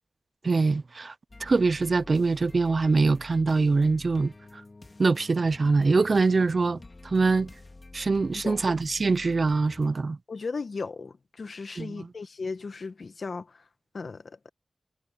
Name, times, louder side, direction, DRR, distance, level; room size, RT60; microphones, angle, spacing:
voice 1, 0.4-1.1 1.4-4.3 5.0-6.8 7.0-7.5 7.9-10.2 11.8-12.1, right 4 dB, 50° right, 0.5 m, -23 dB
sound 1, 1.3-9.9, left 2 dB, 35° left, 2.1 m, -48 dB
voice 2, 10.3-13.7 13.9-14.4, left 4 dB, 65° left, 1.6 m, -36 dB
wide cardioid pair, 85°, 0 cm